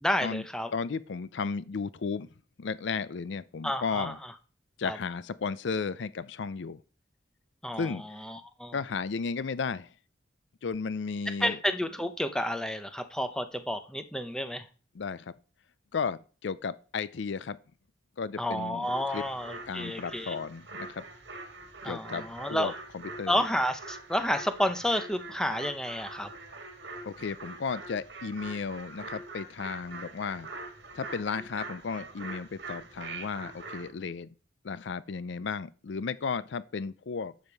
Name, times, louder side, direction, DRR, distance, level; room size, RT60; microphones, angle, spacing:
voice 1, 0.0-0.7 3.6-4.3 4.8-5.0 7.6-8.7 11.4-14.7 18.4-20.4 21.8-22.7 23.3-26.3, equal, 5° left, 0.8 m, -31 dB
voice 2, 0.7-2.3 2.6-4.2 4.8-6.8 7.8-8.2 8.7-9.9 10.6-11.6 14.9-15.3 15.9-17.6 18.2-19.2 19.7-21.0 21.8-22.7 23.2-23.4 27.0-30.5 30.9-34.3 34.6-37.3, left 5 dB, 65° left, 0.4 m, -34 dB
sound 1, 18.8-33.9, right 3 dB, 60° right, 2.0 m, -44 dB
12.0 x 7.2 x 4.7 m
head